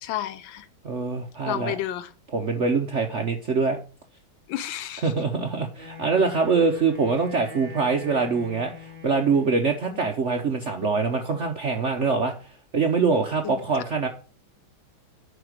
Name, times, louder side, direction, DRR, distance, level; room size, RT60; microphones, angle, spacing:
voice 1, 0.0-0.7 1.5-2.1 4.5-5.1 9.9-10.0 13.4-13.6, left 12 dB, 75° left, 1.3 m, -31 dB
voice 2, 0.8-1.7 2.3-3.8 5.0-12.3 12.7-14.1, right 4 dB, 50° right, 0.8 m, -24 dB
Wind instrument woodwind instrument, 5.7-9.7, left 4 dB, 25° right, 3.3 m, -43 dB
9.9 x 4.4 x 6.5 m
omnidirectional pair, 2.2 m